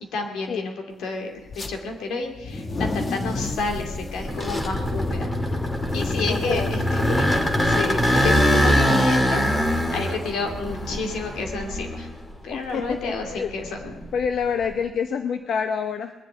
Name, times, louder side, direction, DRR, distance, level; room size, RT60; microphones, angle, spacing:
voice 1, 0.1-5.3 5.9-7.2 7.6-9.4 9.9-12.1 12.4-14.0, left 3 dB, 80° left, 3 dB, 2.6 m, -30 dB
sound 1, 1.4-1.7 2.3-10.8, left 2 dB, 35° left, 1.3 m, -35 dB
sound 2, 3.5-12.4 12.8-14.7, equal, 20° left, 2.0 m, -23 dB
voice 2, 5.9-6.7 12.5-13.5 14.1-16.1, left 6 dB, 65° left, 8 dB, 0.8 m, -27 dB
20.5 x 7.3 x 9.6 m, 1.2 s
cardioid pair, 100°, 0 cm